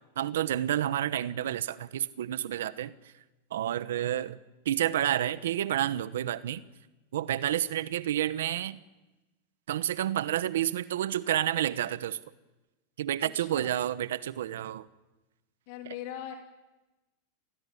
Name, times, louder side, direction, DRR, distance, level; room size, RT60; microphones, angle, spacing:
voice 1, 0.2-2.9 3.5-4.4 4.6-6.6 7.1-8.8 9.7-12.2 13.0-14.8 15.9-16.0, right 11 dB, 85° right, 15 dB, 1.0 m, -29 dB
voice 2, 13.2-13.7 15.7-16.3, left 11 dB, 60° left, 4 dB, 2.8 m, -41 dB
27.0 x 18.5 x 9.9 m, 1.1 s
supercardioid pair, 130°, 0 cm